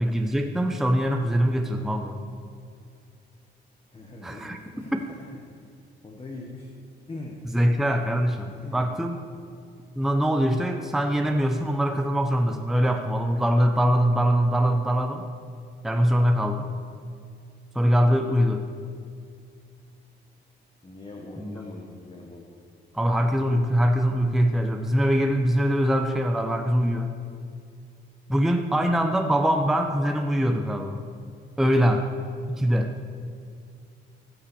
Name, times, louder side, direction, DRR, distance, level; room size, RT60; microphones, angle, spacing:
voice 1, 0.0-2.2 4.2-4.6 4.9-5.0 7.4-9.2 10.0-15.2 15.8-16.7 17.7-18.6 21.4-21.6 22.9-27.1 28.3-31.0 31.6-32.0 32.5-32.9, equal, ahead, 4 dB, 0.7 m, -23 dB
voice 2, 3.9-5.0 5.5-5.6 6.0-6.7 7.1-7.4 8.5-8.8 20.8-22.5 28.7-28.8 31.6-31.9, left 2 dB, 25° left, -1 dB, 1.5 m, -41 dB
15.0 x 5.6 x 7.0 m, 2.3 s
cardioid pair, 90°, 20 cm